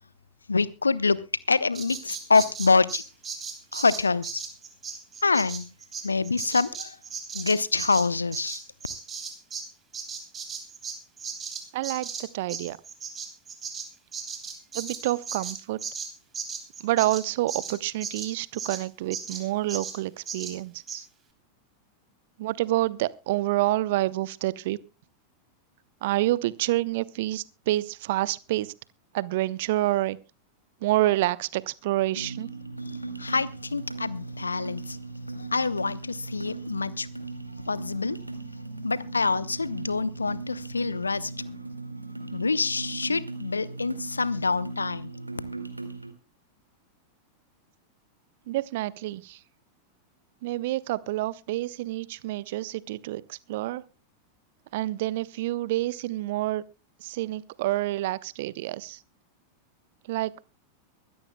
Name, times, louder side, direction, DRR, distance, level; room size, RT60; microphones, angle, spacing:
voice 1, 0.5-1.2 1.5-3.0 3.7-4.4 5.2-5.7 6.0-7.0 7.3-8.6 32.9-35.0 35.4-37.1 37.7-38.2 38.8-41.3 42.3-45.1, left 4 dB, 80° left, 0.7 m, -26 dB
Bird vocalization bird call bird song, 1.7-9.7 9.9-18.8 19.1-19.4 19.7-20.0 20.3-20.5 20.9-21.0, right 6 dB, 20° right, 3.2 m, -36 dB
voice 2, 11.7-12.8 14.7-15.8 16.8-21.1 22.4-24.8 26.0-28.7 29.1-30.2 30.8-32.5 48.5-49.4 50.4-53.8 54.7-56.6 57.0-59.0 60.1-60.5, right 16 dB, 50° right, 0.7 m, -28 dB
sound 1, 32.1-46.1, right 3 dB, 85° right, 2.1 m, -38 dB
23.5 x 13.5 x 2.2 m
figure-of-eight pair, 90°, 0 cm